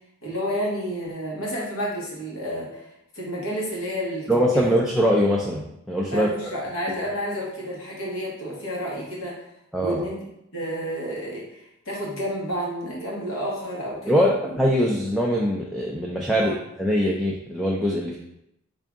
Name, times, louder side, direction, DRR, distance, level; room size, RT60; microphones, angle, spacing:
voice 1, 0.2-4.7 6.1-9.5 9.8-10.2 10.5-14.6 16.3-16.6, equal, 70° left, -4 dB, 1.2 m, -30 dB
voice 2, 4.3-6.3 9.7-10.1 14.1-18.2, equal, ahead, -3 dB, 0.3 m, -22 dB
3.7 x 2.6 x 3.5 m, 0.80 s
head